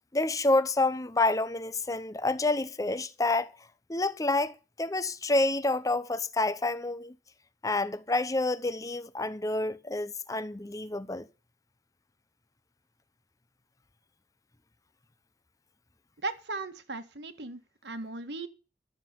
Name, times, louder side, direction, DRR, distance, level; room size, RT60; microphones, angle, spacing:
voice 1, 0.1-3.5 3.9-7.1 7.6-11.3, left 2 dB, 20° left, 0.7 m, -28 dB
voice 2, 16.2-18.5, right 3 dB, 70° right, 1.6 m, -37 dB
12.5 x 7.5 x 7.1 m
head